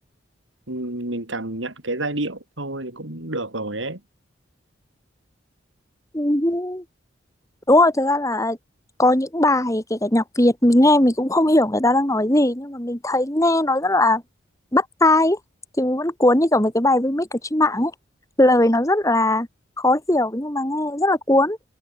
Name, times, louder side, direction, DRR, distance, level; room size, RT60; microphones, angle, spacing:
voice 1, 0.7-4.0, right 2 dB, 80° right, 4.3 m, -29 dB
voice 2, 6.1-6.8 7.7-8.6 9.0-14.2 14.7-15.4 15.8-17.9 18.4-19.5 19.8-21.6, left 1 dB, 15° left, 2.4 m, -19 dB
head